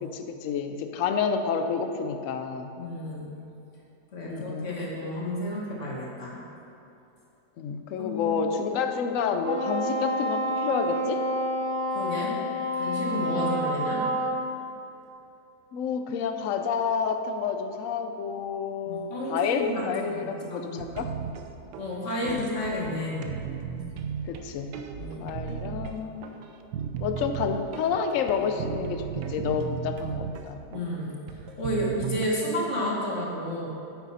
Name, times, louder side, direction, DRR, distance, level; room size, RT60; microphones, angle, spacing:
voice 1, 0.0-2.7 4.3-4.7 7.6-11.2 15.7-21.1 22.2-22.4 24.2-24.7 25.2-26.3 27.0-30.6, left 6 dB, 65° left, 6 dB, 0.9 m, -29 dB
voice 2, 2.8-3.3 4.1-6.4 8.0-8.4 11.9-12.4 12.7-14.0 18.9-20.9 21.8-23.3 25.0-25.2 30.7-31.2 31.6-33.7, left 1 dB, 45° left, -4 dB, 1.9 m, -31 dB
Wind instrument woodwind instrument, 9.4-14.5, equal, 65° right, 2.0 m, -28 dB
sound 1, 20.8-32.3, right 7 dB, 90° right, 1.3 m, -36 dB
9.1 x 8.2 x 4.2 m, 2.9 s
omnidirectional pair, 1.8 m